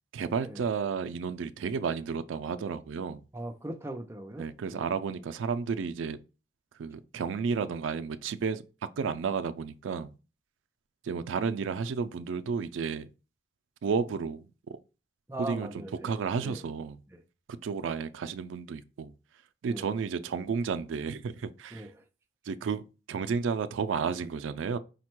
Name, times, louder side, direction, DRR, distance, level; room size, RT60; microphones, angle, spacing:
voice 1, 0.1-3.2 4.4-6.2 6.8-8.6 9.0-10.1 11.0-13.1 13.8-14.8 15.4-15.7 16.0-17.0 17.5-19.1 19.6-21.9 22.5-22.8 23.1-24.8, right 5 dB, 90° right, 0.3 m, -32 dB
voice 2, 3.3-4.9 15.3-16.6 17.1-17.2 19.7-19.9 21.7-22.0, right 1 dB, 15° right, 0.4 m, -40 dB
5.1 x 2.2 x 4.4 m
head